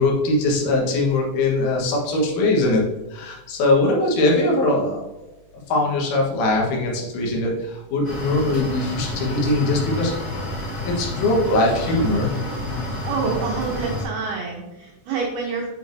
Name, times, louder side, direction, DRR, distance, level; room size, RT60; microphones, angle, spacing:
voice 1, 0.0-2.8 3.1-5.3 5.7-10.1 10.8-12.3, left 2 dB, 75° left, -2 dB, 3.8 m, -21 dB
sound 1, 8.0-14.0, left 1 dB, 50° left, 2.1 m, -29 dB
voice 2, 13.0-15.7, right 5 dB, 85° right, -1 dB, 2.2 m, -27 dB
8.5 x 5.2 x 2.6 m, 0.98 s
omnidirectional pair, 5.7 m